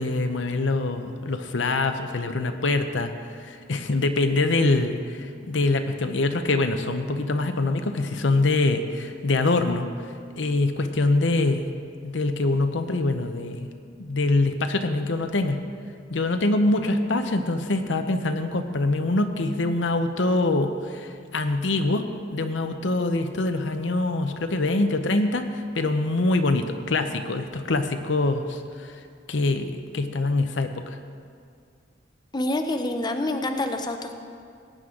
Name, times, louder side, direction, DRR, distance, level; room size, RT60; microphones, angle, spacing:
voice 1, 0.0-3.1 3.5-9.9 10.4-11.7 12.0-13.7 14.0-15.6 16.1-28.6 29.3-31.0, left 2 dB, 80° left, 7 dB, 0.8 m, -24 dB
voice 2, 32.3-34.1, left 1 dB, 25° left, 5 dB, 0.7 m, -27 dB
18.5 x 9.2 x 3.8 m, 2.2 s
head